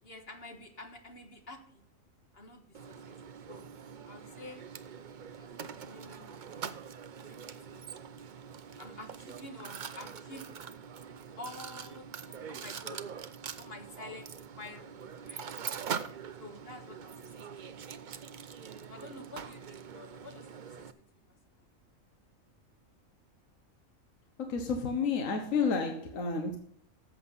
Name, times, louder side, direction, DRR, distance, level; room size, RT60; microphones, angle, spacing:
voice 1, 0.0-1.8 2.3-3.2 3.5-3.6 4.0-4.6 5.4-6.6 7.2-7.8 8.8-10.5 11.4-13.1 13.6-15.4 16.4-18.5 18.9-21.0 25.6-25.8 26.2-26.3, left 2 dB, 45° left, 4 dB, 1.7 m, -49 dB
Mechanisms, 2.7-20.9, right 7 dB, 50° right, 0.6 m, -43 dB
voice 2, 24.4-26.6, left 5 dB, 70° left, 4 dB, 1.6 m, -30 dB
13.5 x 7.7 x 4.0 m, 0.62 s
omnidirectional pair, 1.4 m